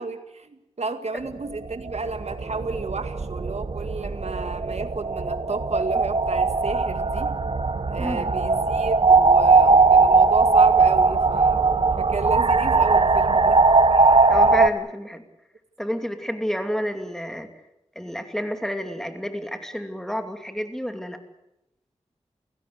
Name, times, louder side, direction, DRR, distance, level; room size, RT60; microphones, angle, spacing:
voice 1, 0.0-7.4 7.9-13.6, right 4 dB, 70° right, 8 dB, 2.1 m, -32 dB
sound 1, 1.5-14.7, right 4 dB, 50° right, 1.1 m, -19 dB
voice 2, 8.0-8.3 14.3-15.2 15.8-17.5 18.0-21.2, equal, 5° left, 6 dB, 2.6 m, -29 dB
29.0 x 16.5 x 8.1 m, 0.88 s
wide cardioid pair, 75°, 12 cm